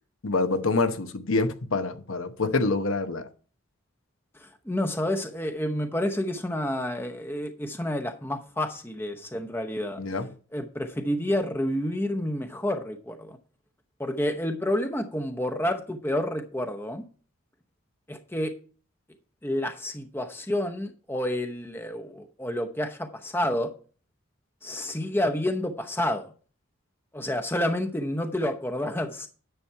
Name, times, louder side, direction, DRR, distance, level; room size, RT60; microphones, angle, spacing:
voice 1, 0.2-3.3 10.0-10.3, left 3 dB, 75° left, 1.0 m, -26 dB
voice 2, 4.4-10.0 10.5-13.4 14.0-17.0 18.1-18.5 19.4-23.7 24.6-26.3 27.1-29.3, left 1 dB, 10° left, 0.8 m, -29 dB
9.9 x 7.1 x 4.5 m
head